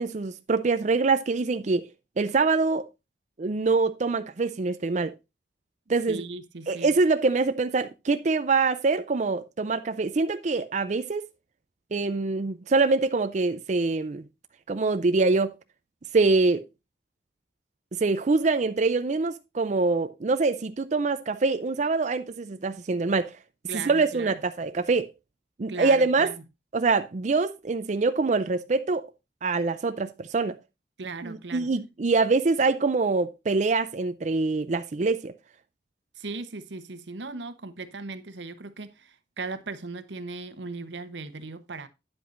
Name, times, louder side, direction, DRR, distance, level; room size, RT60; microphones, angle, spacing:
voice 1, 0.0-1.9 2.2-2.9 3.4-5.1 5.9-6.2 6.7-11.2 11.9-14.2 14.7-15.5 16.1-16.6 17.9-23.3 23.7-25.1 25.6-26.3 26.7-29.1 29.4-30.6 31.2-35.3, right 3 dB, 40° right, 0.5 m, -24 dB
voice 2, 6.1-7.0 23.7-24.4 25.7-26.4 31.0-31.7 36.1-41.9, right 3 dB, 85° right, 1.0 m, -38 dB
9.7 x 8.0 x 2.5 m
head